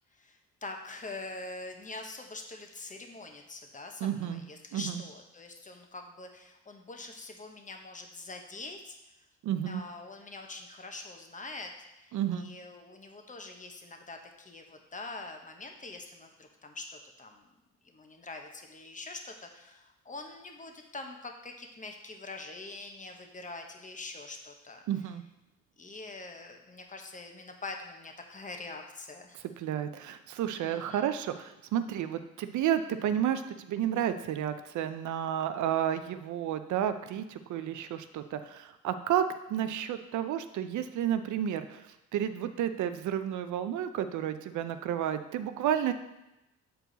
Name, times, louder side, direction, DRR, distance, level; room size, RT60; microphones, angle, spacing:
voice 1, 0.1-9.0 9.6-11.7 12.0-17.5 17.8-24.8 25.8-29.4 30.5-31.2, left 3 dB, 25° left, 3 dB, 1.0 m, -44 dB
voice 2, 4.0-4.4 4.7-5.0 9.4-9.8 12.1-12.5 24.9-25.2 29.6-45.9, right 10 dB, 75° right, 10 dB, 0.6 m, -31 dB
7.8 x 4.6 x 4.0 m, 0.93 s
cardioid pair, 90°, 30 cm